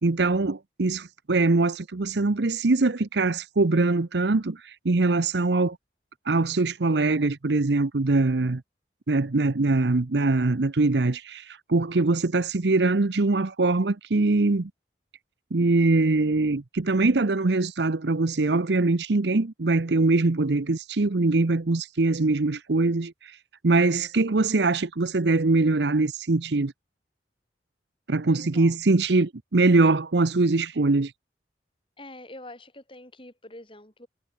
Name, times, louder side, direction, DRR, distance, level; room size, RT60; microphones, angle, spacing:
voice 1, 0.0-4.6 4.8-5.8 6.3-8.6 9.1-11.4 11.7-14.7 15.5-23.1 23.6-26.7 28.1-31.1, right 3 dB, 70° right, 0.8 m, -22 dB
voice 2, 28.3-28.8 32.0-34.1, left 1 dB, 30° left, 7.0 m, -45 dB
head